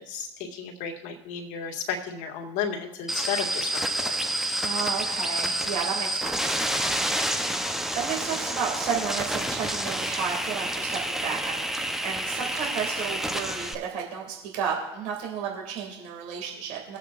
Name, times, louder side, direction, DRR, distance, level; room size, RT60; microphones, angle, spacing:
voice 1, 0.0-4.2, left 7 dB, 60° left, 1 dB, 1.9 m, -33 dB
sound 1, 3.1-13.7, right 1 dB, ahead, 0.8 m, -29 dB
voice 2, 4.6-7.2 7.9-17.0, right 7 dB, 60° right, 0 dB, 2.3 m, -33 dB
20.5 x 8.0 x 2.5 m, 0.99 s
hypercardioid pair, 80°, 15 cm